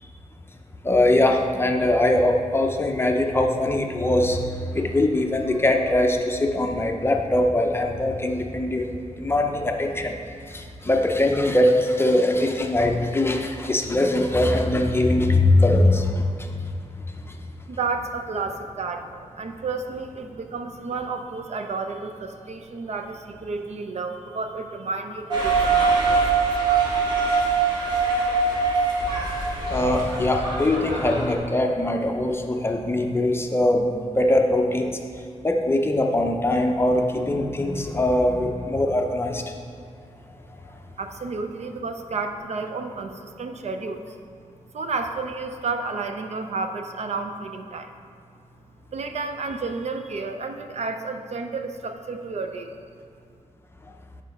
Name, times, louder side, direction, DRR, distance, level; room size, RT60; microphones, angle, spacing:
voice 1, 0.8-4.4 4.7-8.9 9.2-10.2 10.5-16.2 29.7-33.9 34.2-34.9 35.4-39.4, left 1 dB, 20° left, 3 dB, 0.6 m, -21 dB
voice 2, 17.7-26.9 41.0-44.2 44.7-47.9 48.9-52.7, right 4 dB, 60° right, 6 dB, 0.6 m, -31 dB
sound 1, 25.3-31.3, right 4 dB, 35° right, 1.8 m, -23 dB
7.8 x 5.0 x 5.2 m, 2.4 s
wide cardioid pair, 145°, 13 cm